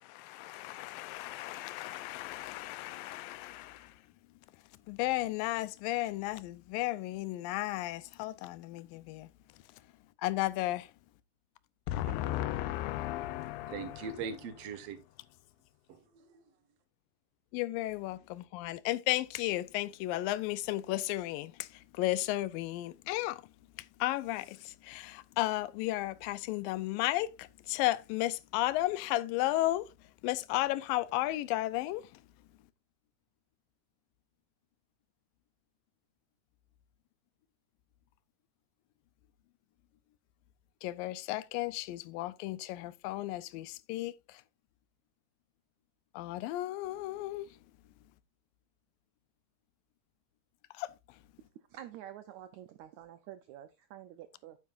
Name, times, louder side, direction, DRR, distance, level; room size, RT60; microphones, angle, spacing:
voice 1, 0.0-3.9 4.9-9.3 10.2-10.9 11.9-14.1 17.5-23.4 24.0-29.9 30.2-32.1 40.8-44.4 46.1-47.5 50.8-50.9, left 16 dB, 80° left, 2.3 m, -34 dB
voice 2, 12.8-13.1 13.6-15.0 15.9-16.4, right 5 dB, 55° right, 2.0 m, -42 dB
voice 3, 51.5-54.6, right 11 dB, 90° right, 1.6 m, -48 dB
9.6 x 9.1 x 2.5 m
omnidirectional pair, 4.2 m